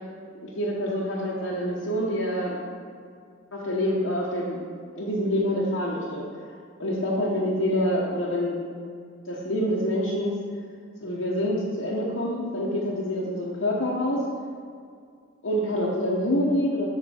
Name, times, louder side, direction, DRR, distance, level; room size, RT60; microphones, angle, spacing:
voice 1, 0.4-2.6 3.5-4.6 4.9-6.2 6.8-8.6 9.3-10.3 11.0-14.2 15.4-16.9, equal, 70° left, -6 dB, 1.1 m, -26 dB
7.8 x 5.9 x 4.4 m, 2.2 s
head